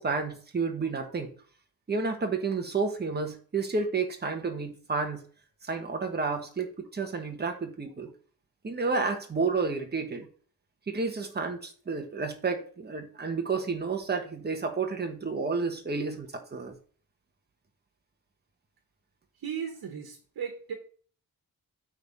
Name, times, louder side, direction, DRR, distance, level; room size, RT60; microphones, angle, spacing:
voice 1, 0.0-1.3 1.9-5.2 5.6-8.1 8.6-10.2 10.9-16.7, right 4 dB, 30° right, 1.3 m, -31 dB
voice 2, 19.4-20.7, right 7 dB, 80° right, 1.4 m, -36 dB
8.9 x 3.8 x 5.3 m
wide cardioid pair, 165°, 36 cm